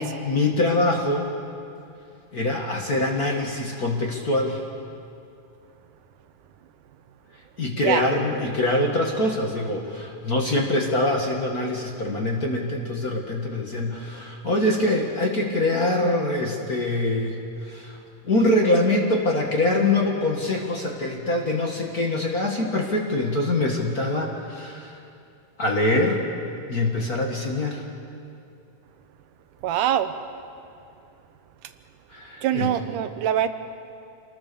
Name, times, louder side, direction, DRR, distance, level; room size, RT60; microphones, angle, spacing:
voice 1, 0.2-1.3 2.3-4.6 7.6-17.4 17.6-18.0 18.2-25.0 25.6-26.2 26.7-27.9 32.1-32.7, left 2 dB, 35° left, 0 dB, 1.8 m, -24 dB
voice 2, 29.6-30.1 32.4-33.5, right 11 dB, 90° right, 10 dB, 2.5 m, -23 dB
27.0 x 19.5 x 7.0 m, 2.5 s
omnidirectional pair, 3.6 m